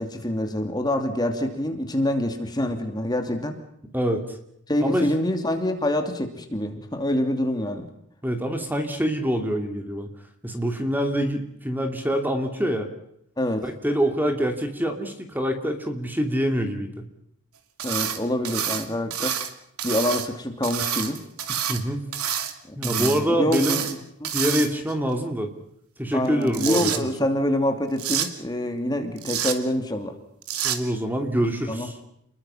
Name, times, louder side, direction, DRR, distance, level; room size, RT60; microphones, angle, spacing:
voice 1, 0.0-3.6 4.7-7.9 13.4-13.6 17.8-19.4 19.8-21.2 22.7-23.9 24.2-24.3 26.1-30.2 31.7-31.9, left 1 dB, 20° left, 5 dB, 2.7 m, -26 dB
voice 2, 3.9-4.4 4.8-5.1 8.2-10.1 10.4-12.9 13.6-17.0 21.5-22.1 22.7-23.8 24.3-25.5 26.0-27.1 30.6-32.0, equal, 10° right, 5 dB, 2.7 m, -25 dB
sound 1, 17.8-18.2 18.4-19.5 19.8-20.3 20.6-21.8 22.1-22.5 22.8-23.2 23.5-23.9 24.2-24.9 26.2-27.0 28.0-28.3 29.2-29.6 30.4-30.8, right 9 dB, 80° right, 2.7 m, -28 dB
30.0 x 21.5 x 5.8 m, 0.76 s
head